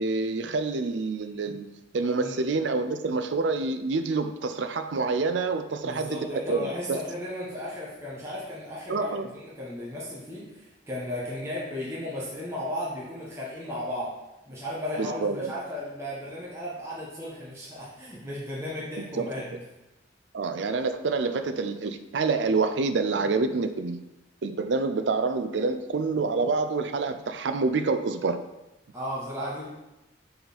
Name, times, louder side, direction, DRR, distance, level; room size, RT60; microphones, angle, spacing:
voice 1, 0.0-7.0 8.9-9.3 15.0-15.5 19.2-19.3 20.3-24.0 24.4-28.4, right 4 dB, 80° right, 9 dB, 0.5 m, -27 dB
voice 2, 5.8-14.1 14.5-19.6 28.9-29.6, left 1 dB, 15° right, -7 dB, 1.4 m, -35 dB
6.7 x 4.0 x 4.2 m, 0.99 s
head